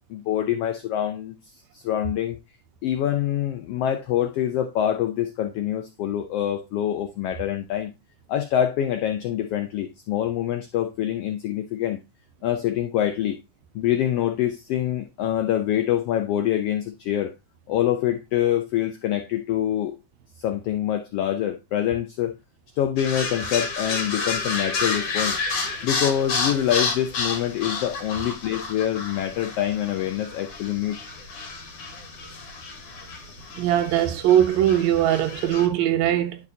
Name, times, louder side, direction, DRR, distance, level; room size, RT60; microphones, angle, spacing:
voice 1, 0.1-1.4 1.7-2.4 2.8-7.9 8.3-12.0 12.4-13.4 13.7-17.3 17.7-20.0 20.4-22.3 22.8-25.4 25.8-31.0, left 11 dB, 85° left, 1.3 m, -25 dB
sound 1, 23.0-35.7, left 4 dB, 60° left, 2.3 m, -30 dB
voice 2, 33.6-36.4, right 11 dB, 80° right, 1.8 m, -20 dB
10.5 x 5.0 x 2.7 m
omnidirectional pair, 3.5 m